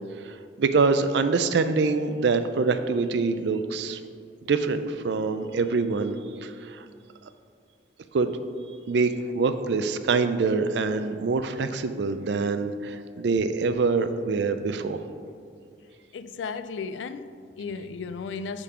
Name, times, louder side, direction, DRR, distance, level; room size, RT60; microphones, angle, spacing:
voice 1, 0.2-4.0 4.5-6.2 6.4-6.8 8.1-8.3 8.9-15.0, right 4 dB, 70° right, 0.4 m, -25 dB
voice 2, 16.1-18.6, left 5 dB, 80° left, 0.3 m, -35 dB
8.4 x 3.8 x 5.6 m
head